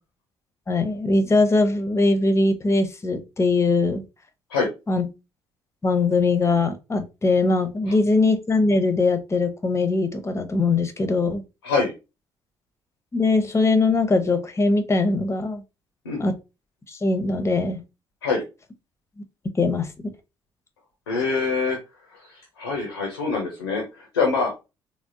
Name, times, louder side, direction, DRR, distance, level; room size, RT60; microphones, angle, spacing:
voice 1, 0.7-4.0 4.9-5.1 5.8-11.4 13.1-15.6 16.2-16.3 16.9-17.8 19.6-19.9, left 3 dB, 20° left, 0.7 m, -21 dB
voice 2, 21.1-21.8 22.1-24.5, left 4 dB, 90° left, 0.6 m, -25 dB
3.4 x 2.1 x 2.5 m
hypercardioid pair, 50°, 12 cm